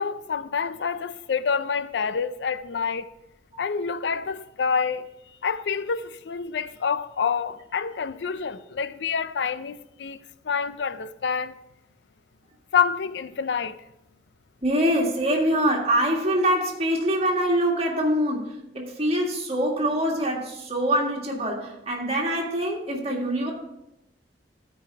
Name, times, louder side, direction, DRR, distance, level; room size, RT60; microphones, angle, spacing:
voice 1, 0.0-3.1 3.6-5.1 5.4-10.2 10.4-11.5 12.7-13.8, left 6 dB, 80° left, 0.5 m, -27 dB
voice 2, 14.6-18.5 18.7-23.5, right 1 dB, 35° right, 1.8 m, -24 dB
13.5 x 5.0 x 4.6 m
head